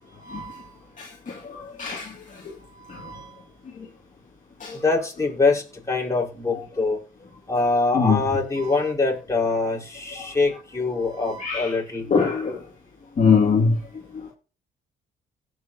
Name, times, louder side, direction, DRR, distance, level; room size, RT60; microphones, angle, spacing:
voice 1, 0.3-0.6 1.0-2.1 2.9-3.2 4.6-4.8 7.9-8.2 11.2-11.7 12.1-12.6 13.2-13.7, left 5 dB, 40° left, 2.3 m, -22 dB
voice 2, 4.8-7.0 7.5-12.1, left 3 dB, 15° left, 4.7 m, -24 dB
17.5 x 6.8 x 2.9 m
cardioid pair, 90°, 20 cm